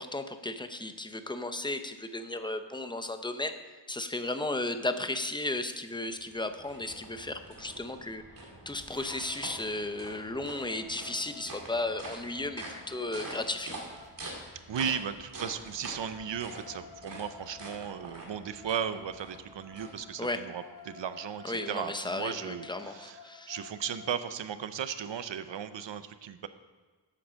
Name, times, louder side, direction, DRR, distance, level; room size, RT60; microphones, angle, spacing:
voice 1, 0.0-3.6 3.9-8.2 8.7-13.8 20.2-20.4 21.4-23.5, left 2 dB, 10° left, 8 dB, 0.7 m, -34 dB
sound 1, 6.0-20.4, right 1 dB, 50° right, 2.3 m, -46 dB
sound 2, 8.9-9.5 9.9-14.1 15.6-24.2, left 6 dB, 45° left, 1.4 m, -53 dB
voice 2, 14.7-23.2 23.5-26.5, right 8 dB, 80° right, 12 dB, 0.7 m, -36 dB
8.7 x 7.8 x 6.3 m, 1.3 s
wide cardioid pair, 110°, 44 cm